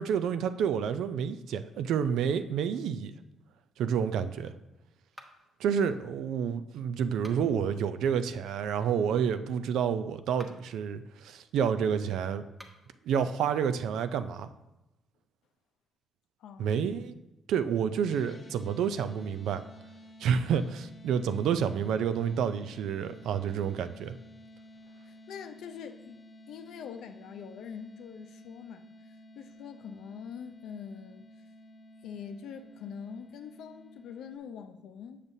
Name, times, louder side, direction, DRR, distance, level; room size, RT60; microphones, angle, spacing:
voice 1, 0.0-3.1 3.8-4.5 5.6-12.4 13.0-14.5 16.6-17.1 17.5-19.6 20.2-24.2, right 7 dB, 80° right, 11 dB, 0.4 m, -29 dB
sound 1, 5.1-5.6 7.1-7.7 10.2-10.8 12.5-13.0, equal, 10° right, 0.9 m, -52 dB
voice 2, 16.4-16.8 25.1-26.2 26.5-31.2 32.0-35.3, left 7 dB, 80° left, 7 dB, 0.5 m, -44 dB
sound 2, 18.1-34.4, equal, 40° left, 0.8 m, -53 dB
7.2 x 6.6 x 2.7 m, 0.96 s
cardioid pair, 90°, 0 cm